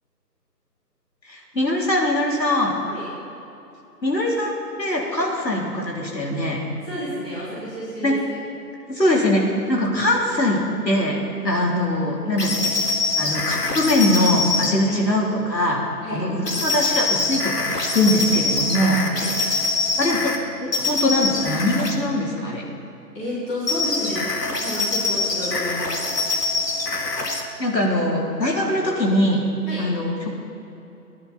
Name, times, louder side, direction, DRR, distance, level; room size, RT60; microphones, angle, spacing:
voice 1, 1.3-2.7 4.0-6.6 8.0-8.2 8.9-9.4 9.7-11.2 11.4-12.7 13.2-15.8 16.1-19.0 20.0-20.3 20.6-22.6 27.6-29.4 29.8-30.3, left 1 dB, 90° left, -2 dB, 3.7 m, -22 dB
voice 2, 6.8-8.2 14.8-14.9 16.0-16.2 19.1-19.3 23.1-24.3 24.6-26.0 29.7-29.8, left 1 dB, 10° left, -10 dB, 2.6 m, -30 dB
sound 1, 12.4-14.7 16.4-20.4 20.7-22.0 23.7-27.4, left 3 dB, 70° left, 2.0 m, -24 dB
29.0 x 10.5 x 4.3 m, 2.9 s
figure-of-eight pair, 165°, 49 cm